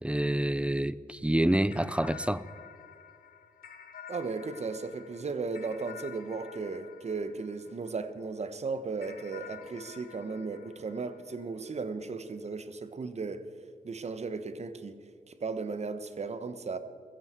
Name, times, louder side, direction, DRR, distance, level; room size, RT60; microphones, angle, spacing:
voice 1, 0.0-2.4, right 1 dB, 10° right, 0.5 m, -27 dB
sound 1, 1.7-8.3 9.0-11.8, left 8 dB, 85° left, 1.4 m, -50 dB
voice 2, 4.1-13.4 13.8-15.0 15.3-16.8, right 4 dB, 50° right, 1.2 m, -36 dB
15.5 x 14.5 x 4.5 m
cardioid pair, 80°, 15 cm